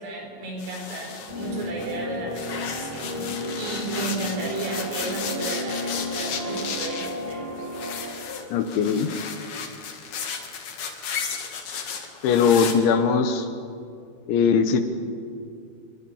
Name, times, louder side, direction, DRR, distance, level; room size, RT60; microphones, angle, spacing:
voice 1, 0.0-7.5, right 3 dB, 75° right, 0 dB, 7.6 m, -34 dB
sound 1, 0.6-2.0 2.3-12.7, left 6 dB, 55° left, 2.6 m, -34 dB
sound 2, 1.3-8.1, left 1 dB, 10° left, 3.0 m, -33 dB
voice 2, 8.5-9.1 12.2-13.5 14.3-14.8, left 6 dB, 75° left, 8 dB, 3.4 m, -20 dB
29.5 x 22.0 x 5.7 m, 2.4 s
omnidirectional pair, 5.8 m